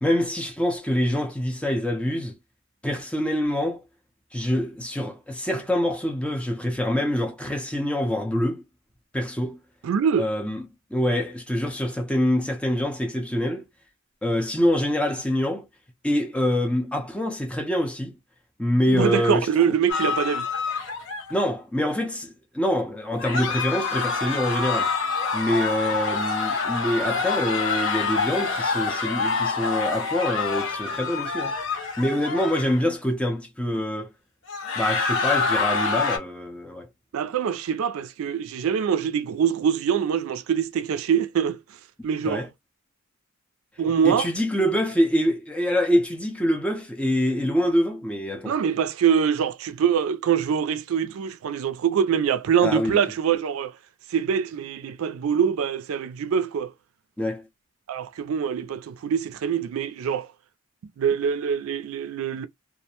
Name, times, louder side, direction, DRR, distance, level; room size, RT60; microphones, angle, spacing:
voice 1, 0.0-2.3 2.8-3.8 4.3-8.6 9.1-9.6 10.2-10.6 10.9-13.7 14.2-15.7 16.0-18.1 18.6-19.5 21.3-24.9 25.3-31.5 32.0-34.1 34.8-36.9 42.2-42.5 44.0-48.5 52.6-53.0 57.2-57.5, left 1 dB, 5° left, 0.5 m, -25 dB
voice 2, 9.8-10.3 18.9-20.5 37.1-41.6 42.0-42.5 43.8-44.3 48.5-53.7 54.1-56.7 57.9-60.3 61.0-62.5, right 7 dB, 85° right, 0.3 m, -24 dB
sound 1, 19.9-21.4 23.2-32.8 34.5-36.2, left 4 dB, 65° left, 0.8 m, -26 dB
2.4 x 2.1 x 2.8 m
head